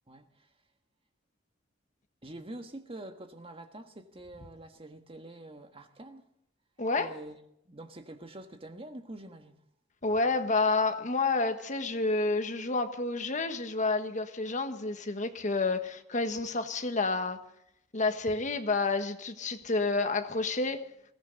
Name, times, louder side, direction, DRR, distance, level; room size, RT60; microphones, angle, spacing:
voice 1, 0.1-0.5 2.2-6.2 7.0-7.4 7.6-9.5, right 1 dB, 30° right, 1.4 m, -46 dB
voice 2, 6.8-7.1 10.0-17.4 17.9-20.9, left 3 dB, 40° left, 1.4 m, -29 dB
21.5 x 16.0 x 4.0 m
head